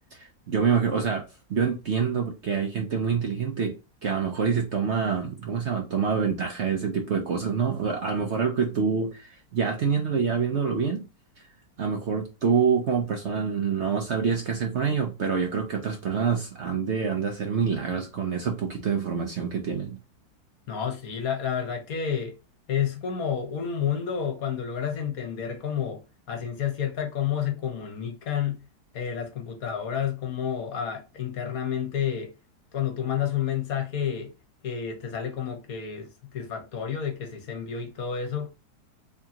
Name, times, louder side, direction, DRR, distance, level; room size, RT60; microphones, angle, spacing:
voice 1, 0.1-11.1 11.4-11.5 11.8-20.0, right 6 dB, 55° right, 0.8 m, -26 dB
voice 2, 20.7-22.4 22.7-26.0 26.3-28.7 28.9-32.3 32.7-34.3 34.6-36.1 36.3-38.5, left 8 dB, 65° left, 1.3 m, -30 dB
3.6 x 3.6 x 2.8 m
omnidirectional pair, 1.8 m